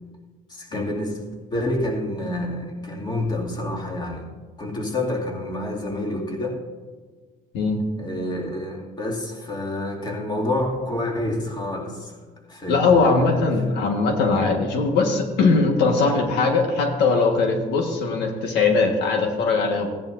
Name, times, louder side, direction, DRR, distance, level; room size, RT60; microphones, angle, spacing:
voice 1, 0.5-1.2 1.5-4.3 4.6-6.6 8.0-12.2 12.5-14.0, left 1 dB, 25° left, 0 dB, 2.3 m, -28 dB
voice 2, 12.7-19.9, left 4 dB, 85° left, 3 dB, 1.5 m, -20 dB
15.5 x 10.5 x 2.6 m, 1.4 s
cardioid pair, 110°, 17 cm